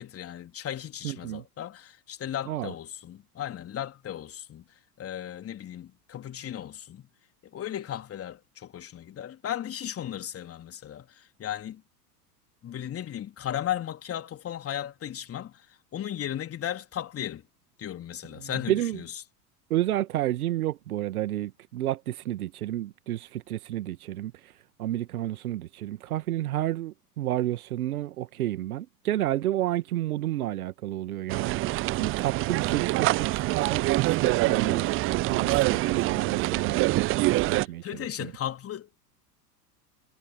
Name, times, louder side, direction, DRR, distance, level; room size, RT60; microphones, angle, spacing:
voice 1, 0.0-4.6 5.0-7.1 7.4-11.8 12.6-17.4 17.8-19.2 37.6-39.0, left 10 dB, 30° left, 3.6 m, -36 dB
voice 2, 1.0-1.4 2.5-2.7 18.4-19.0 19.7-24.3 24.8-31.6 32.0-34.9 35.3-36.9 37.5-37.8 38.2-38.3, right 14 dB, 65° right, 1.9 m, -30 dB
sound 1, 31.3-37.7, right 19 dB, 25° right, 0.6 m, -25 dB
figure-of-eight pair, 80°, 48 cm